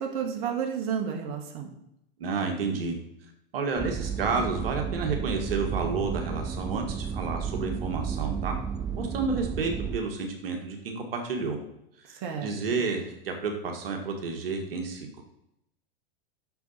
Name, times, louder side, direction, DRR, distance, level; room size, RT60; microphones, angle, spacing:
voice 1, 0.0-1.7 12.2-12.5, right 7 dB, 45° right, 2 dB, 1.9 m, -31 dB
voice 2, 2.2-3.0 3.5-8.5 8.9-11.6 12.0-15.2, right 4 dB, 75° right, 3 dB, 1.9 m, -30 dB
sound 1, 3.8-10.0, right 7 dB, 15° right, 0.4 m, -32 dB
9.2 x 6.8 x 4.2 m, 0.80 s
hypercardioid pair, 105°, 29 cm